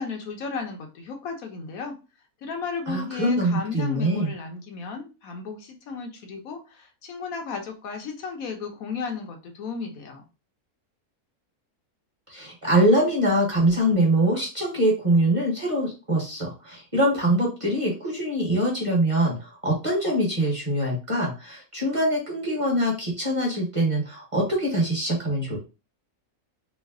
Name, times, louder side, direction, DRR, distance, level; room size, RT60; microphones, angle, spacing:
voice 1, 0.0-2.0 2.4-10.2, left 5 dB, 70° left, 3 dB, 1.1 m, -34 dB
voice 2, 2.9-4.3 12.3-25.6, right 1 dB, 25° right, -3 dB, 1.0 m, -23 dB
3.1 x 2.0 x 3.5 m, 0.31 s
omnidirectional pair, 1.6 m